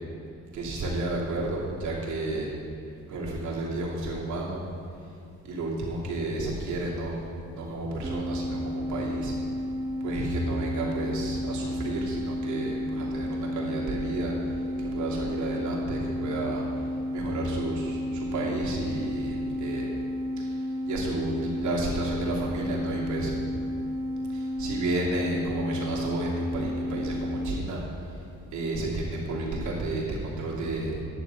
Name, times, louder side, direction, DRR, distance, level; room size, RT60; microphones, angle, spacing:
voice 1, 0.5-2.5 3.1-4.6 5.4-7.2 7.5-9.3 10.0-16.8 17.1-19.9 20.4-23.3 24.3-27.8 28.0-28.2 28.5-31.0, right 2 dB, 75° right, -4 dB, 2.8 m, -32 dB
sound 1, 8.0-27.6, left 1 dB, 10° right, 0.5 m, -32 dB
10.5 x 9.1 x 5.3 m, 2.4 s
cardioid pair, 90°, 30 cm